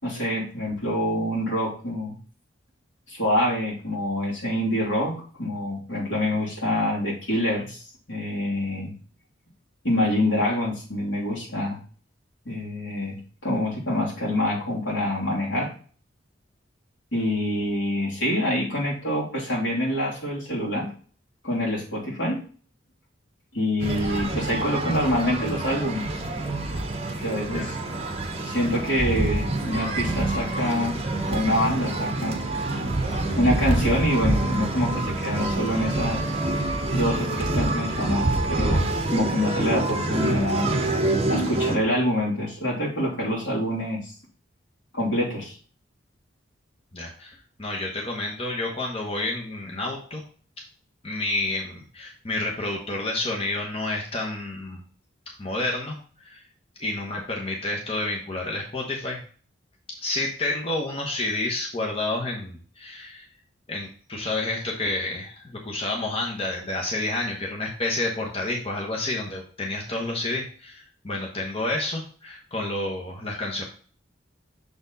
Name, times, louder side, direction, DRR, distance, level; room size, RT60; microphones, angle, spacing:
voice 1, 0.0-2.2 3.1-7.8 8.1-8.9 9.8-11.8 12.4-15.7 17.1-20.9 21.4-22.4 23.5-26.1 27.2-27.8 28.4-31.0 31.3-32.4 33.4-36.2 36.9-40.8 41.3-44.1 44.9-45.6, left 1 dB, 80° left, -4 dB, 3.0 m, -26 dB
sound 1, 23.8-41.8, right 2 dB, 30° right, 1.1 m, -26 dB
voice 2, 46.9-50.2 51.0-54.8 55.4-56.4 56.8-59.2 60.0-63.3 63.7-73.6, left 2 dB, 30° left, -1 dB, 1.1 m, -29 dB
6.9 x 4.4 x 4.0 m, 0.42 s
head